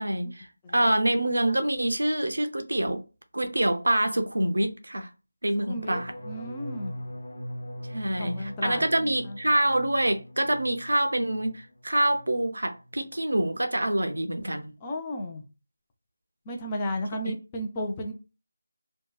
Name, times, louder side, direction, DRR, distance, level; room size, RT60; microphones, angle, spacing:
voice 1, 0.0-3.0 3.3-5.1 5.4-6.1 7.9-14.7 17.2-17.3, right 1 dB, 85° right, 0.5 m, -26 dB
sound 1, 5.7-11.6 11.9-12.4 12.7-13.1, equal, 65° left, 0.8 m, -41 dB
voice 2, 5.7-7.0 8.2-9.4 14.8-15.4 16.5-18.1, left 1 dB, 20° left, 0.4 m, -34 dB
2.7 x 2.2 x 2.2 m
figure-of-eight pair, 165°, 0 cm